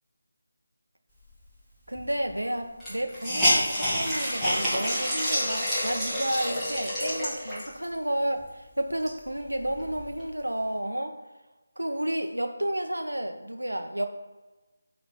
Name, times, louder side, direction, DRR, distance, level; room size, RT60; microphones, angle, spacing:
voice 1, 1.9-11.2 11.8-14.0, right 1 dB, 80° right, 5 dB, 1.0 m, -31 dB
Hiss, 2.0-2.1 2.3-2.4 2.8-7.8 8.4-8.5 8.9-10.2, equal, 5° left, 1.7 m, -28 dB
8.7 x 3.3 x 4.3 m, 1.2 s
figure-of-eight pair, 160°, 0 cm